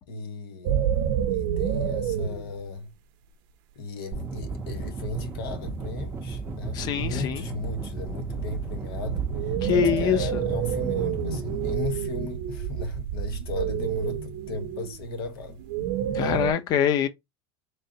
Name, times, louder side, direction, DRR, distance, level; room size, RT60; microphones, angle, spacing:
voice 1, 0.1-0.8 1.3-2.9 3.7-15.6, left 3 dB, 90° left, 1.1 m, -36 dB
sound 1, 0.6-2.6 5.8-5.9 7.9-16.5, right 9 dB, 60° right, 0.6 m, -29 dB
sound 2, 4.1-11.7, right 3 dB, 15° right, 0.5 m, -34 dB
voice 2, 6.7-7.4 9.6-10.4 16.1-17.1, left 8 dB, 35° left, 0.6 m, -24 dB
3.8 x 3.3 x 2.7 m
supercardioid pair, 160°, 12 cm